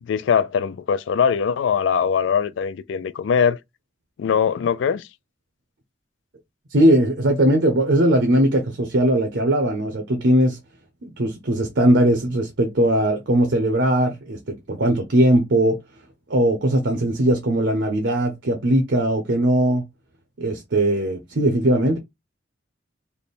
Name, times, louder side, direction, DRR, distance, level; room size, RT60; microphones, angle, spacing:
voice 1, 0.0-3.6 4.2-5.1, left 7 dB, 85° left, 0.3 m, -21 dB
voice 2, 6.7-10.6 11.0-15.8 16.3-19.8 20.4-22.0, right 1 dB, 75° right, 0.7 m, -19 dB
3.4 x 2.1 x 4.1 m
head